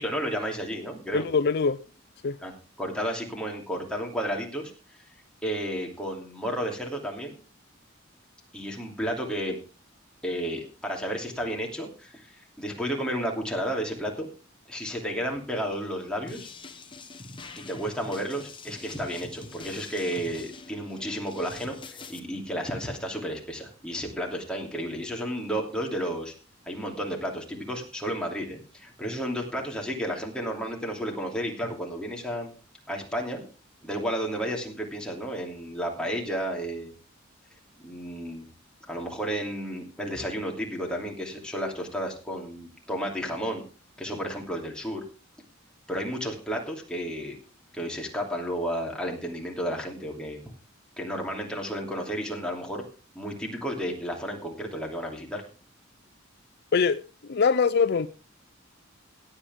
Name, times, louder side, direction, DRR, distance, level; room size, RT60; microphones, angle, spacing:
voice 1, 0.0-1.2 2.4-2.5 2.8-4.7 5.4-7.3 8.5-9.6 10.2-14.3 14.7-16.5 17.5-26.3 26.7-32.5 32.9-33.4 33.8-36.9 37.8-38.5 38.9-43.6 44.0-45.0 45.9-47.4 47.7-50.4 51.0-52.8 53.1-55.4, equal, 5° left, 0 dB, 2.9 m, -32 dB
voice 2, 1.1-1.8 2.2-2.4 56.7-58.1, left 5 dB, 55° left, 14 dB, 0.5 m, -23 dB
sound 1, 16.3-22.2, left 3 dB, 25° left, 1.1 m, -44 dB
16.5 x 8.8 x 3.6 m, 0.35 s
head